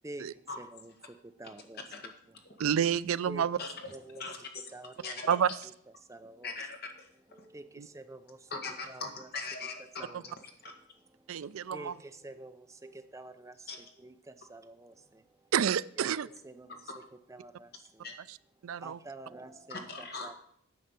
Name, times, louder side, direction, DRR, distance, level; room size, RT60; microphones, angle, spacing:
voice 1, 0.0-2.7 3.3-3.5 3.9-4.3 4.7-5.2 5.6-6.7 7.3-8.6 8.9-9.3 9.6-15.5 16.0-16.1 16.4-18.1 18.6-20.3, right 2 dB, 15° right, 0.6 m, -49 dB
voice 2, 2.6-3.6 5.3-5.5 7.8-7.9 10.1-10.2 11.3-11.9 15.5-16.3 18.6-19.0, right 8 dB, 70° right, 0.4 m, -29 dB
voice 3, 3.6-3.9 4.2-4.7 5.0-5.6 6.4-6.8 7.4-7.5 8.5-10.1 10.6-10.7 13.7-13.8 18.0-18.1 19.7-20.4, left 4 dB, 50° left, 1.6 m, -40 dB
9.5 x 5.6 x 8.1 m
head